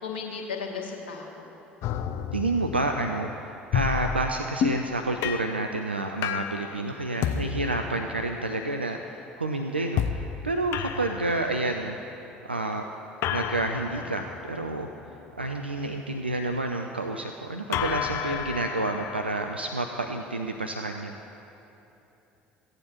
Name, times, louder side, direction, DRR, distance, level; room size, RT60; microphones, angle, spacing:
voice 1, 0.0-1.5, left 5 dB, 75° left, 1 dB, 1.1 m, -35 dB
sound 1, 1.8-4.9 5.2-5.6 6.2-6.7 7.2-8.4 10.0-10.3 10.7-11.9 13.2-15.6 17.7-19.2, left 9 dB, 55° left, 0.5 m, -31 dB
voice 2, 2.3-12.0 12.4-12.9 13.3-14.9 15.4-21.1, right 2 dB, 90° right, 4 dB, 0.3 m, -29 dB
16.0 x 8.8 x 2.9 m, 3.0 s
figure-of-eight pair, 60°, 6 cm